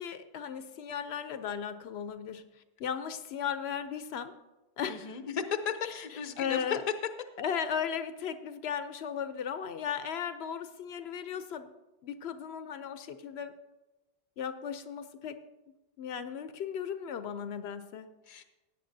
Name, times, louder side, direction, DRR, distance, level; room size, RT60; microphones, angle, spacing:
voice 1, 0.0-2.5 2.8-4.3 4.8-5.1 5.9-6.0 6.4-6.8 7.4-11.7 12.0-13.5 14.4-15.4 16.0-18.1, left 8 dB, 80° left, 11 dB, 0.9 m, -36 dB
voice 2, 4.9-6.8 18.3-18.4, left 7 dB, 45° left, 8 dB, 0.8 m, -35 dB
17.0 x 9.2 x 2.7 m, 1.1 s
omnidirectional pair, 1.1 m